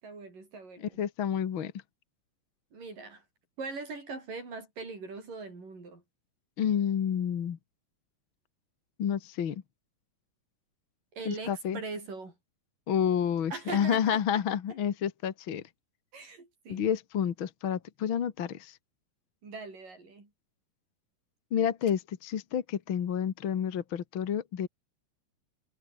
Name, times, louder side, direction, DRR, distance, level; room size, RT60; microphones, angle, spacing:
voice 1, 0.0-1.0 2.7-3.2 3.6-6.0 11.1-12.4 13.5-14.4 16.1-16.9 19.4-20.3, right 4 dB, 75° right, 9.5 m, -41 dB
voice 2, 0.8-1.7 6.6-7.6 9.0-9.6 11.2-11.8 12.9-15.6 16.7-18.8 21.5-24.7, left 8 dB, 50° left, 1.7 m, -29 dB
omnidirectional pair, 3.9 m